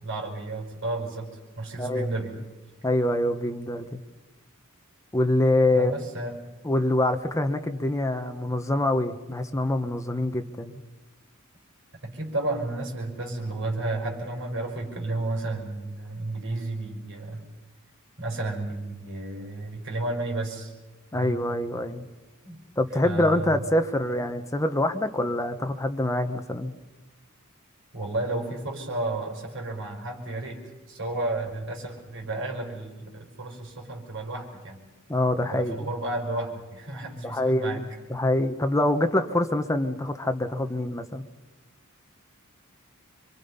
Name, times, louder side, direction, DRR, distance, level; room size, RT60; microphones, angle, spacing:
voice 1, 0.0-2.3 5.7-6.4 12.0-17.4 18.2-20.7 21.1-21.4 22.4-22.6 23.0-23.7 27.9-30.6 30.9-34.8 35.4-37.8, right 2 dB, 60° right, 1 dB, 5.3 m, -32 dB
voice 2, 1.8-2.1 2.8-4.0 5.1-5.9 6.6-10.8 21.1-22.0 22.8-26.7 35.1-35.9 37.2-41.2, left 1 dB, 15° left, 7 dB, 1.2 m, -25 dB
27.0 x 24.0 x 5.6 m, 1.2 s
head